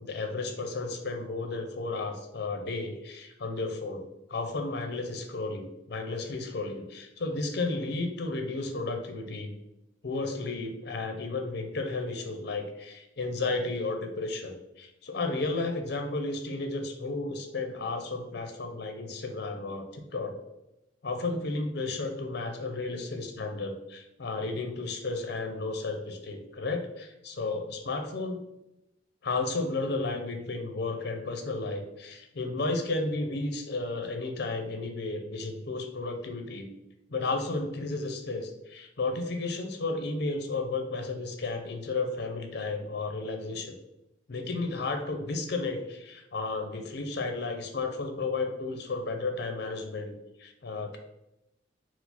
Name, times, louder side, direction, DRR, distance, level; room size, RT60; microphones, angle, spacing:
voice 1, 0.0-4.0 4.3-9.5 10.0-20.3 21.0-28.4 29.2-36.7 37.1-43.7 44.3-50.1 50.4-51.0, left 3 dB, 65° left, 5 dB, 0.6 m, -33 dB
4.6 x 2.0 x 4.0 m, 0.88 s
head